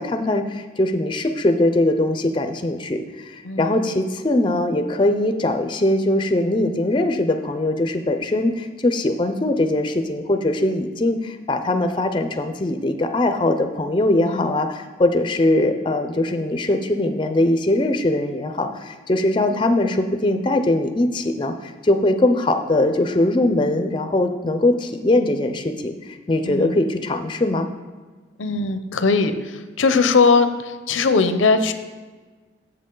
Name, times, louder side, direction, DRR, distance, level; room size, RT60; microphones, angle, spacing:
voice 1, 0.0-27.7, left 1 dB, 25° left, 7 dB, 0.4 m, -21 dB
voice 2, 3.4-3.8 14.2-14.6 26.4-26.8 28.4-31.7, left 4 dB, 85° left, 10 dB, 0.6 m, -20 dB
7.7 x 7.6 x 3.8 m, 1.4 s
head